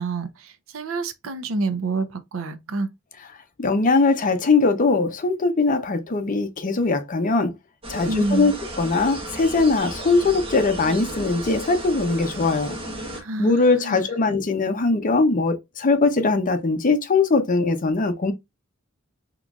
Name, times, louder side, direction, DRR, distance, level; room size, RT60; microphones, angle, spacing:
voice 1, 0.0-2.9 8.1-8.5 13.1-14.1, right 3 dB, 70° right, 0.6 m, -28 dB
voice 2, 3.6-7.5 7.9-12.8 13.4-18.3, left 3 dB, 40° left, 0.6 m, -21 dB
sound 1, 7.8-13.2, right 1 dB, 25° right, 0.9 m, -34 dB
3.8 x 2.9 x 2.3 m
head